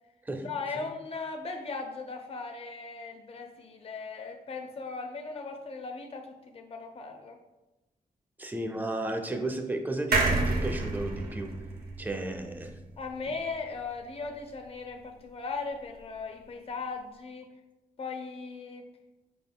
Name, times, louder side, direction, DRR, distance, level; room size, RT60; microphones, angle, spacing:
voice 1, 0.4-7.4 13.0-17.5 18.0-18.9, left 4 dB, 40° left, 4 dB, 0.5 m, -38 dB
voice 2, 8.4-11.5 12.0-12.8, right 2 dB, 10° right, 4 dB, 0.5 m, -34 dB
sound 1, 10.1-13.6 14.0-14.1 14.3-14.4, right 3 dB, 90° right, 0.7 m, -30 dB
4.9 x 3.7 x 2.2 m, 1.0 s
wide cardioid pair, 90°, 15 cm